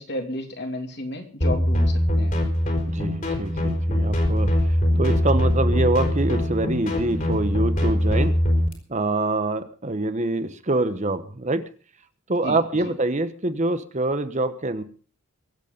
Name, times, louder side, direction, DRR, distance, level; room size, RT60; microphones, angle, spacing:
voice 1, 0.0-2.4 4.9-5.0 12.4-12.9, left 1 dB, 55° left, 4 dB, 2.9 m, -33 dB
sound 1, 1.4-8.7, equal, 40° left, 4.0 m, -22 dB
voice 2, 2.9-8.4 8.9-11.6 12.3-14.8, right 2 dB, 35° right, 11 dB, 1.1 m, -25 dB
23.0 x 8.4 x 5.3 m, 0.40 s
head